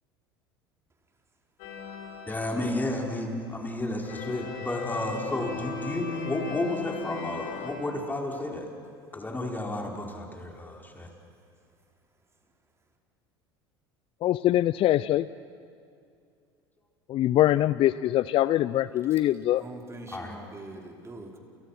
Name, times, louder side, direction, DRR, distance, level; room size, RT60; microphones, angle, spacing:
sound 1, 1.6-3.6 4.0-7.7, left 4 dB, 65° left, 5.0 m, -38 dB
voice 1, 2.3-8.7 9.1-11.1 20.1-20.4, left 1 dB, 15° left, 1 dB, 5.2 m, -32 dB
voice 2, 14.2-15.3 17.1-19.6, left 13 dB, 45° left, 17 dB, 0.6 m, -23 dB
voice 3, 19.6-21.4, right 2 dB, 20° right, 1 dB, 5.0 m, -43 dB
29.5 x 29.0 x 6.1 m, 2.4 s
hypercardioid pair, 75°, 13 cm